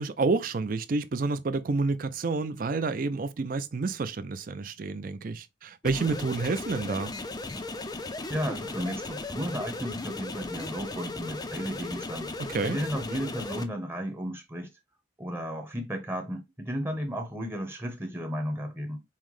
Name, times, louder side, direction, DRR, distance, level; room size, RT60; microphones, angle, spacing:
voice 1, 0.0-7.1 12.4-12.8, right 3 dB, 45° right, 0.4 m, -29 dB
sound 1, 5.8-13.6, left 2 dB, 20° left, 0.4 m, -36 dB
voice 2, 8.3-12.3 12.6-14.7 15.2-19.0, equal, 10° right, 0.8 m, -34 dB
5.5 x 2.1 x 3.1 m
head